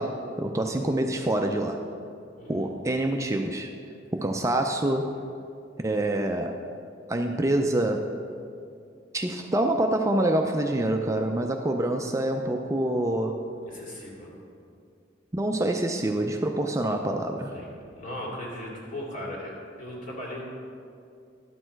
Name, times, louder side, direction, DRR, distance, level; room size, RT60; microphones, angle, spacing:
voice 1, 0.0-1.9 2.5-3.7 4.1-5.1 5.8-6.6 7.1-8.1 9.1-13.4 15.3-17.5, right 1 dB, 15° right, 4 dB, 0.4 m, -26 dB
voice 2, 2.4-2.7 13.7-14.3 17.5-20.5, left 1 dB, 45° left, -3 dB, 2.4 m, -38 dB
11.5 x 6.5 x 4.5 m, 2.4 s
head